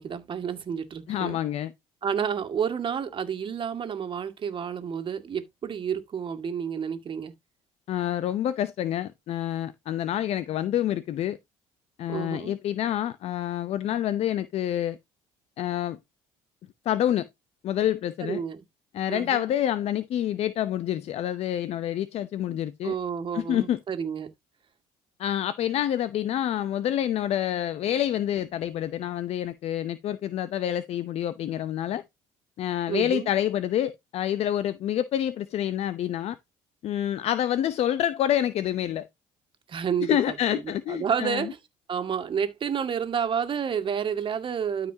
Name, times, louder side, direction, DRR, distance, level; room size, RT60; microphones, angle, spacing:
voice 1, 0.0-1.4 2.0-7.3 12.1-12.6 18.2-18.6 19.1-19.4 22.5-24.3 32.9-33.3 39.7-40.6 40.9-41.6 41.9-44.9, right 7 dB, 45° right, 2.0 m, -30 dB
voice 2, 1.1-1.7 7.9-11.4 12.0-15.0 15.6-16.0 16.9-17.3 17.6-18.4 18.9-22.9 23.3-23.8 25.2-32.0 32.6-36.4 36.8-39.1 40.0-41.4, left 11 dB, 60° left, 0.8 m, -27 dB
12.5 x 4.9 x 2.8 m
supercardioid pair, 85°, 12 cm